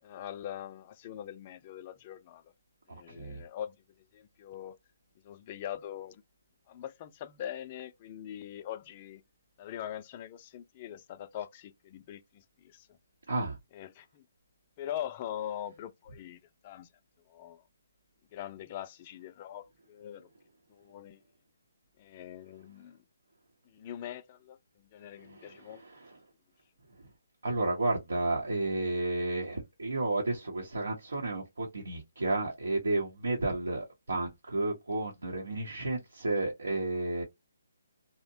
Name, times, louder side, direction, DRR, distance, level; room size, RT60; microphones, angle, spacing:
voice 1, 0.0-2.5 2.9-4.8 5.2-6.2 6.7-9.2 9.6-13.0 13.7-14.2 14.8-16.9 17.3-17.6 18.3-20.3 20.7-21.2 22.0-23.0 23.7-25.8, left 11 dB, 35° left, 0.4 m, -42 dB
voice 2, 2.9-3.4 13.3-13.6 25.2-26.2 27.0-27.1 27.4-37.2, right 2 dB, 80° right, 0.8 m, -32 dB
2.7 x 2.1 x 2.6 m
hypercardioid pair, 150°, 0 cm